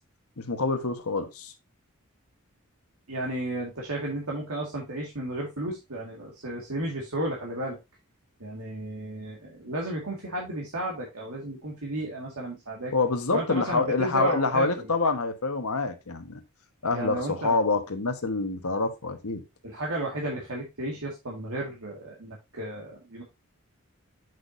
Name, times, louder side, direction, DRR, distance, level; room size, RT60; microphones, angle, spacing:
voice 1, 0.4-1.5 12.9-16.4 16.8-19.4, left 3 dB, 80° left, 1.3 m, -26 dB
voice 2, 3.1-7.8 8.4-12.9 13.3-14.9 16.9-17.6 19.6-23.2, right 1 dB, 75° right, 2.0 m, -33 dB
8.0 x 6.1 x 2.6 m
head